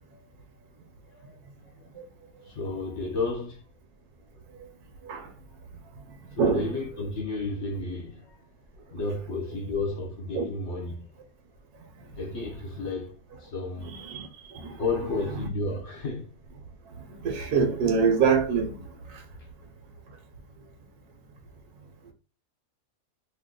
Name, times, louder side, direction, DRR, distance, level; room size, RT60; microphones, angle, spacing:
voice 1, 1.1-1.9 2.5-3.6 6.4-8.4 8.9-11.1 12.2-13.1 13.4-13.9 14.8-16.3, left 3 dB, 50° left, 1.1 m, -32 dB
voice 2, 6.4-6.7 10.3-10.5 13.8-14.3 14.5-14.7 17.2-18.8, right 5 dB, 80° right, 1.2 m, -24 dB
2.9 x 2.2 x 3.6 m
omnidirectional pair, 1.7 m